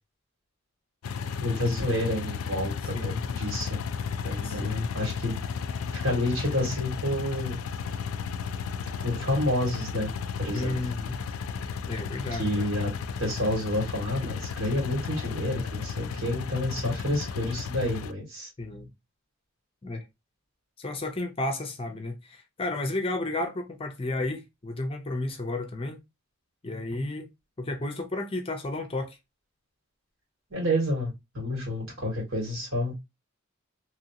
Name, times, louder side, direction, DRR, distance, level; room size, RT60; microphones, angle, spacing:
sound 1, 1.0-18.1, left 6 dB, 90° left, 0.4 m, -34 dB
voice 1, 1.4-3.8 4.2-5.3 5.9-7.6 9.0-10.1 10.4-10.8 12.3-12.9 13.2-18.5 30.5-33.1, left 1 dB, 80° right, 2.0 m, -29 dB
voice 2, 2.9-3.2 4.4-4.9 10.5-11.2 11.9-12.7 18.6-18.9 19.8-20.0 20.8-26.0 26.6-27.3 27.6-29.2, left 2 dB, 25° left, 0.5 m, -32 dB
2.9 x 2.7 x 2.8 m
head